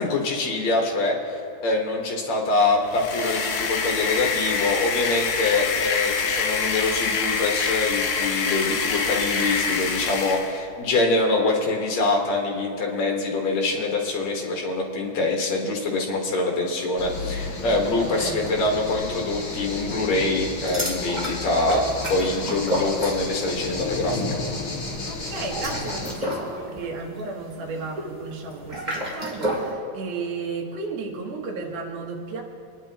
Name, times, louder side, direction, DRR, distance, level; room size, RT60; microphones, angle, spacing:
voice 1, 0.0-21.8 22.1-24.3, left 2 dB, 65° left, 0 dB, 2.6 m, -24 dB
sound 1, 2.8-10.6, left 5 dB, 90° left, 1.2 m, -26 dB
sound 2, 17.0-26.1, left 3 dB, 40° left, 2.4 m, -32 dB
voice 2, 18.0-18.5 25.1-32.4, right 4 dB, 75° right, 0 dB, 2.9 m, -34 dB
sound 3, 20.6-23.6 23.8-24.2 25.3-29.7, equal, 15° right, 2.7 m, -31 dB
27.5 x 10.0 x 2.9 m, 2.6 s
omnidirectional pair, 3.6 m